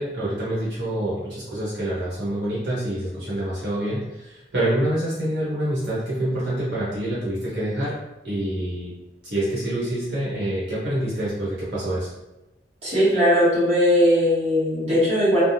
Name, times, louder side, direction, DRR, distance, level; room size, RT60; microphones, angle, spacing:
voice 1, 0.0-7.9 8.2-8.9 9.2-12.1, right 1 dB, 70° right, -9 dB, 1.1 m, -26 dB
voice 2, 12.8-15.4, equal, 40° right, -10 dB, 1.4 m, -19 dB
3.3 x 2.0 x 2.7 m, 0.97 s
head